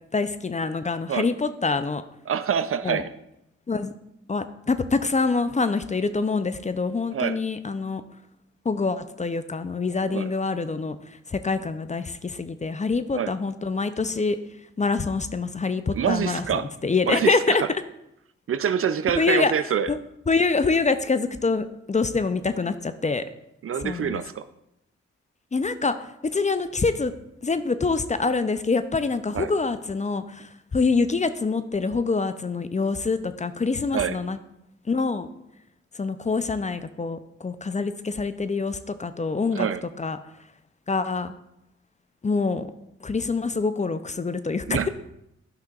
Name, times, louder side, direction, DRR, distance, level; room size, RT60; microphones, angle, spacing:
voice 1, 0.1-2.0 2.8-3.0 3.7-3.9 4.3-8.0 8.6-11.0 11.3-14.4 14.8-17.6 19.2-19.5 19.9-20.0 20.3-23.3 23.8-24.2 25.5-27.1 27.4-34.4 34.9-35.3 36.0-39.7 40.0-40.2 40.9-41.3 42.2-42.7 43.0-44.9, left 4 dB, 25° left, 11 dB, 0.5 m, -25 dB
voice 2, 2.3-3.1 7.1-7.4 10.1-10.3 13.1-13.3 15.9-16.7 17.0-17.6 18.5-19.9 23.6-24.4 29.3-29.5 33.9-34.2 39.6-39.8 44.7-44.9, right 8 dB, 50° right, 12 dB, 0.5 m, -26 dB
12.0 x 5.7 x 2.4 m, 0.83 s
supercardioid pair, 50°, 29 cm